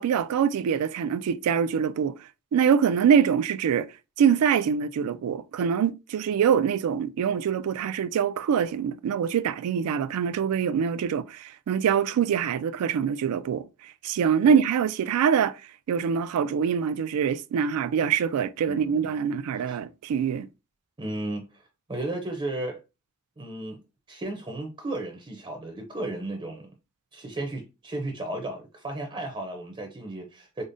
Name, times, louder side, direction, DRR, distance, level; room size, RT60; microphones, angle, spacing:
voice 1, 0.0-3.9 4.2-15.6 15.9-20.5, right 7 dB, 75° right, 0.3 m, -24 dB
voice 2, 18.7-19.1 19.7-19.8 21.0-21.6 21.9-22.8 23.4-23.8 24.1-26.7 27.1-30.6, right 2 dB, 20° right, 0.5 m, -34 dB
4.9 x 2.0 x 2.5 m
head